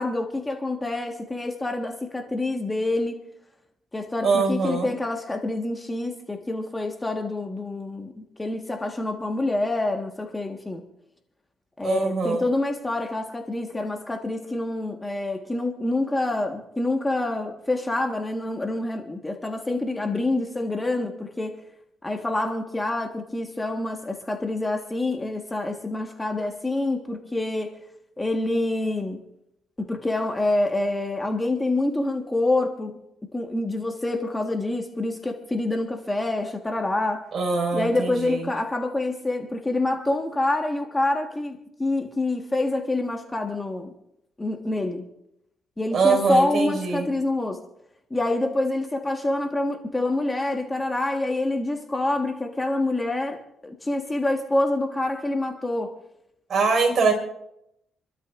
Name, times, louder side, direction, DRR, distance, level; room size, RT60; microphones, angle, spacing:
voice 1, 0.0-3.2 3.9-10.8 11.8-21.6 22.0-27.7 28.2-29.2 29.8-33.0 33.3-37.2 37.7-43.9 44.4-45.1 45.8-47.6 48.1-55.9, left 2 dB, 15° left, 3 dB, 1.6 m, -27 dB
voice 2, 4.2-4.9 11.8-12.4 37.3-38.5 45.9-47.1 56.5-57.1, right 4 dB, 50° right, 2 dB, 5.5 m, -23 dB
27.5 x 12.5 x 2.6 m, 0.79 s
cardioid pair, 90°, 0 cm